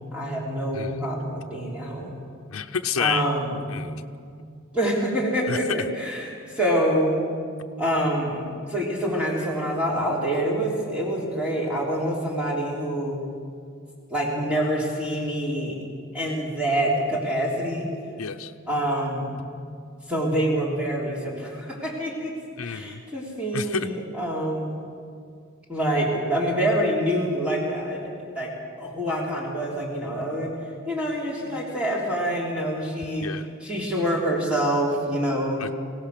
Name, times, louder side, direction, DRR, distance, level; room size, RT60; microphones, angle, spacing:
voice 1, 0.0-2.1 3.0-3.8 4.3-4.4 4.7-7.2 7.8-13.2 14.1-15.8 16.1-17.9 18.7-19.4 20.1-22.3 22.6-24.7 25.7-28.5 28.8-30.5 30.9-35.6, right 1 dB, 5° right, -5 dB, 3.7 m, -26 dB
voice 2, 2.5-3.3 3.7-4.0 5.5-5.6 18.2-18.5 22.6-23.0 23.5-23.9 33.2-33.5 35.6-35.7, left 6 dB, 85° left, 5 dB, 0.7 m, -29 dB
24.5 x 17.5 x 6.7 m, 2.2 s
head